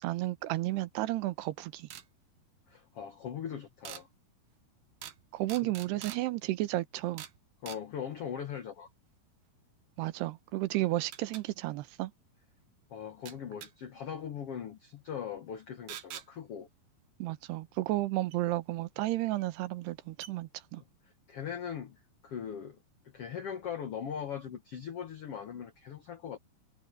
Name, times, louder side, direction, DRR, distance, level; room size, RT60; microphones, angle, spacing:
voice 1, 0.0-1.9 5.3-7.2 10.0-12.1 17.2-20.8, right 17 dB, 85° right, 3.0 m, -32 dB
sound 1, 1.9-2.1 3.8-4.0 5.0-5.2 5.5-6.2 7.2-7.4 7.7-7.8 10.1-10.2 11.1-11.4 13.3-13.7 15.9-16.3 18.3-18.4 19.4-19.5 19.8-19.9 20.2-20.3, right 10 dB, 70° right, 2.9 m, -44 dB
voice 2, 2.7-4.1 5.6-5.7 7.6-8.9 12.9-16.7 20.7-20.8 21.3-22.8 23.0-26.4, left 8 dB, 80° left, 1.3 m, -40 dB
omnidirectional pair, 4.6 m